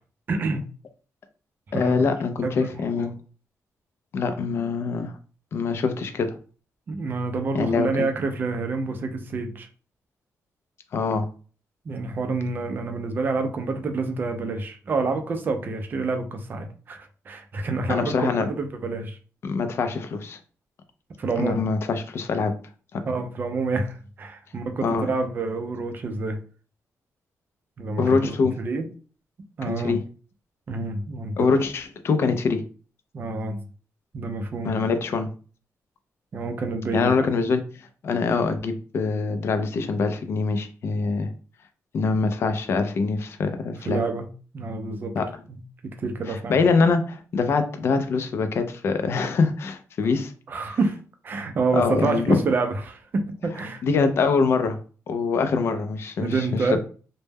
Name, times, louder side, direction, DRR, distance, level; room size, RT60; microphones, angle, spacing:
voice 1, 0.3-0.6 1.7-2.0 2.4-3.1 6.9-9.7 11.9-19.2 21.2-21.6 23.1-26.4 27.8-28.9 29.6-30.0 30.7-31.5 33.1-33.6 34.1-34.9 36.3-37.3 43.9-44.3 44.5-45.1 45.8-46.6 50.5-51.0 51.2-53.8 56.2-56.8, right 3 dB, 35° right, 6 dB, 0.4 m, -28 dB
voice 2, 1.7-3.1 4.1-5.1 5.5-6.4 7.5-8.1 10.9-11.3 17.9-18.5 19.4-20.4 21.4-22.5 22.9-23.0 24.8-25.1 28.0-28.6 29.7-30.0 31.4-32.6 34.6-35.3 36.9-41.3 41.9-44.0 45.1-45.4 46.3-50.3 51.7-52.4 53.8-54.8 55.1-56.8, left 4 dB, 45° left, 9 dB, 0.3 m, -24 dB
2.1 x 2.0 x 3.3 m, 0.39 s
wide cardioid pair, 170°, 6 cm